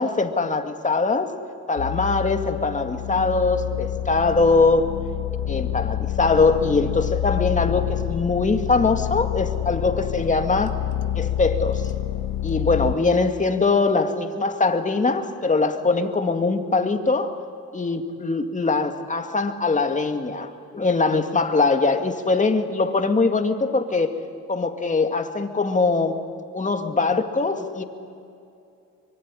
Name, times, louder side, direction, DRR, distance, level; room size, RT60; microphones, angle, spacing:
voice 1, 0.0-1.3 1.7-4.9 5.5-10.7 11.1-11.9 12.4-17.4 17.7-24.1 24.5-26.2 26.5-27.8, left 3 dB, 25° left, 6 dB, 2.3 m, -22 dB
sound 1, 1.8-13.0, left 12 dB, 85° left, 1.2 m, -28 dB
25.0 x 23.5 x 10.0 m, 2.5 s
cardioid pair, 90°, 30 cm